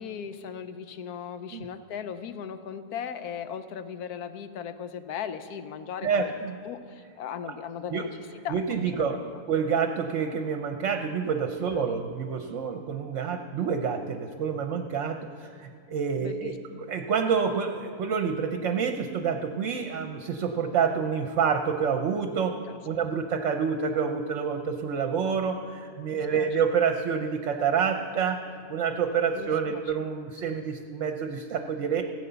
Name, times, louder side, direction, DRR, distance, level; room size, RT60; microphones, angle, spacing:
voice 1, 0.0-6.3 6.6-9.4 11.7-12.0 16.2-16.6 22.7-22.8 26.1-26.5 29.3-29.8, left 7 dB, 80° left, 11 dB, 1.2 m, -38 dB
voice 2, 6.0-6.6 7.5-7.6 7.9-8.0 8.5-9.2 9.5-16.6 16.9-22.5 22.8-28.4 28.7-32.0, right 6 dB, 60° right, 6 dB, 1.0 m, -28 dB
16.0 x 8.7 x 6.8 m, 2.2 s
omnidirectional pair, 1.6 m